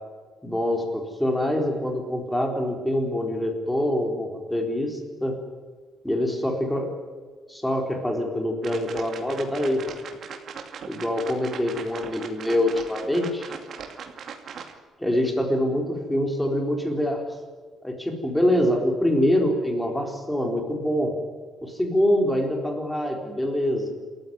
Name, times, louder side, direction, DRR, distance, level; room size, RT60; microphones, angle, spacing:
voice 1, 0.4-5.4 6.0-6.9 7.5-9.9 10.9-13.5 15.0-17.2 17.8-21.1 21.6-23.9, left 1 dB, 5° left, 3 dB, 4.0 m, -25 dB
sound 1, 8.6-14.8, right 6 dB, 45° right, 2.4 m, -39 dB
28.0 x 14.0 x 9.5 m, 1.5 s
cardioid pair, 170°, 0 cm